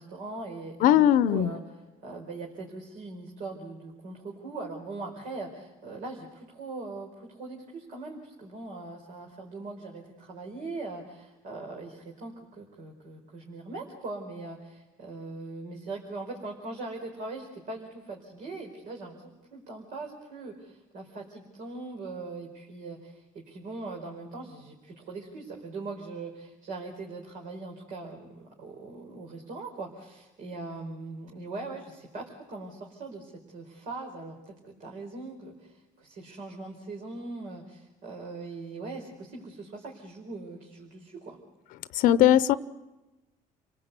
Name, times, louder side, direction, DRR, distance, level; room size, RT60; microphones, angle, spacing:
voice 1, 0.0-41.4, right 3 dB, 70° right, 1 dB, 4.5 m, -41 dB
voice 2, 0.8-1.5 41.9-42.5, left 11 dB, 75° left, 15 dB, 0.8 m, -19 dB
30.0 x 18.5 x 8.2 m, 1.1 s
cardioid pair, 90°, 14 cm